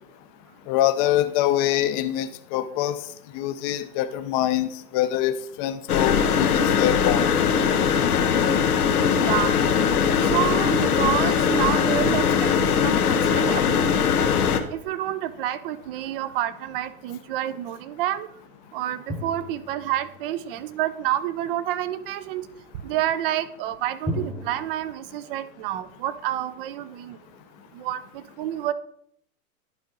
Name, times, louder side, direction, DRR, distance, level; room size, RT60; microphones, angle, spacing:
voice 1, 0.7-3.0 3.3-7.3, left 12 dB, 35° left, 11 dB, 0.6 m, -24 dB
sound 1, 5.9-14.6, left 7 dB, 90° left, 0.9 m, -21 dB
voice 2, 9.2-9.6 10.3-12.3 12.6-13.8 14.1-14.2 14.7-18.3 18.7-22.5 22.8-27.2 27.7-28.7, right 12 dB, 40° right, 15 dB, 0.5 m, -28 dB
sound 2, 19.1-20.7 24.0-24.7, left 1 dB, 5° left, 1.0 m, -34 dB
11.0 x 4.5 x 3.8 m, 0.68 s
hypercardioid pair, 125°, 43 cm